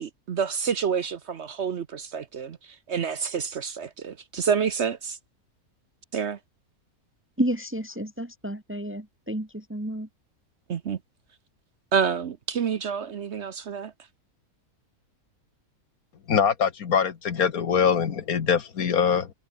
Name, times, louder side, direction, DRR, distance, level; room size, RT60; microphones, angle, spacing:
voice 1, 0.0-5.2 6.1-6.4 10.7-11.0 11.9-13.9, right 6 dB, 55° right, 1.0 m, -28 dB
voice 2, 7.4-10.1, right 1 dB, 10° right, 0.9 m, -30 dB
voice 3, 16.3-19.3, left 7 dB, 70° left, 1.9 m, -23 dB
omnidirectional pair, 1.6 m